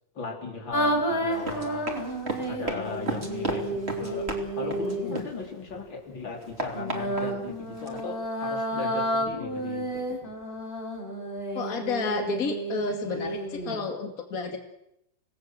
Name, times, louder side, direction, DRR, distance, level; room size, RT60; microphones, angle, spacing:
voice 1, 0.1-2.0 2.5-4.3 4.6-10.0, left 4 dB, 90° left, 1 dB, 4.6 m, -37 dB
sound 1, 0.7-5.2 6.7-13.8, right 1 dB, 30° left, 5.2 m, -31 dB
Run, 1.3-5.8 6.1-8.0, right 2 dB, 35° right, 3.4 m, -35 dB
voice 2, 11.5-14.6, left 4 dB, 50° left, 4 dB, 2.6 m, -31 dB
26.5 x 19.0 x 7.6 m, 0.82 s
omnidirectional pair, 2.0 m